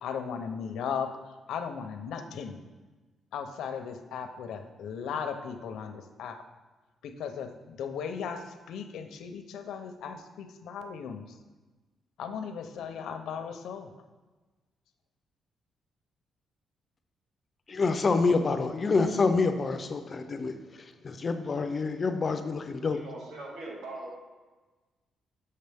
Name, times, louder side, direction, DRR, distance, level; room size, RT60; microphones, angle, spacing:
voice 1, 0.0-1.1 1.5-2.6 3.3-6.4 7.0-11.4 12.2-13.9, left 7 dB, 80° left, 7 dB, 0.6 m, -37 dB
voice 2, 17.7-23.0, left 4 dB, 25° left, 8 dB, 0.4 m, -27 dB
voice 3, 22.9-24.1, right 2 dB, 85° right, -2 dB, 1.9 m, -41 dB
6.6 x 6.6 x 3.4 m, 1.2 s
cardioid pair, 175°, 0 cm